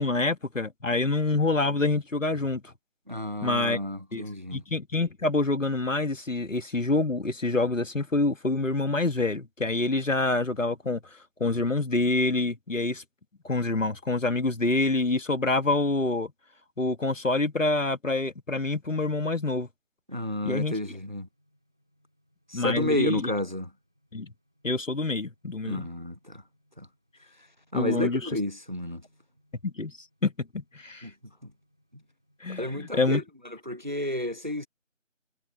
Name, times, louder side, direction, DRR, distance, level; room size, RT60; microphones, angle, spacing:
voice 1, 0.0-2.7 3.4-3.8 4.1-4.2 4.5-11.0 11.4-13.0 13.4-16.3 16.8-19.7 20.4-20.7 22.5-23.3 24.1-24.3 24.6-25.9 27.7-28.2 29.6-29.9 30.2-31.1 32.4-33.2, left 2 dB, 70° left, 1.8 m, -26 dB
voice 2, 3.1-4.6 20.1-21.3 22.5-23.7 25.7-26.4 26.8-26.9 27.7-29.0 31.0-31.1 31.4-31.5 32.6-33.2 33.5-34.7, left 1 dB, 35° right, 1.0 m, -31 dB
sound 1, 21.2-32.8, equal, 5° right, 3.9 m, -71 dB
figure-of-eight pair, 180°, 39 cm